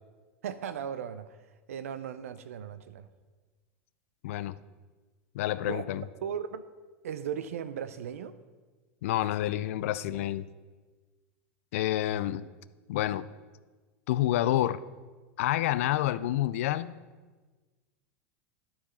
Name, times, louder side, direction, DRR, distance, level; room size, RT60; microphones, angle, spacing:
voice 1, 0.4-1.4 1.7-3.1 5.7-5.9 6.2-6.6 7.0-8.4 12.1-12.3, right 8 dB, 80° right, 11 dB, 0.5 m, -37 dB
voice 2, 4.2-4.5 5.3-6.0 9.0-10.5 11.7-12.4 12.9-13.3 14.1-14.8 15.4-16.9, left 13 dB, 70° left, 16 dB, 0.4 m, -28 dB
12.0 x 4.7 x 5.6 m, 1.3 s
hypercardioid pair, 95°, 8 cm